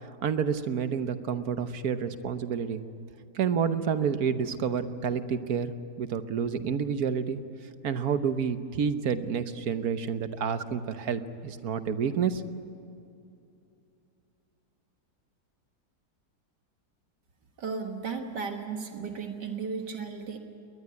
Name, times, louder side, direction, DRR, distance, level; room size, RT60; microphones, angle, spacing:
voice 1, 0.2-2.8 3.3-5.7 6.0-7.4 7.8-12.4, right 7 dB, 65° right, 10 dB, 1.4 m, -29 dB
voice 2, 17.6-20.4, right 5 dB, 80° right, 4 dB, 2.2 m, -35 dB
21.5 x 20.0 x 9.5 m, 2.6 s
omnidirectional pair, 1.8 m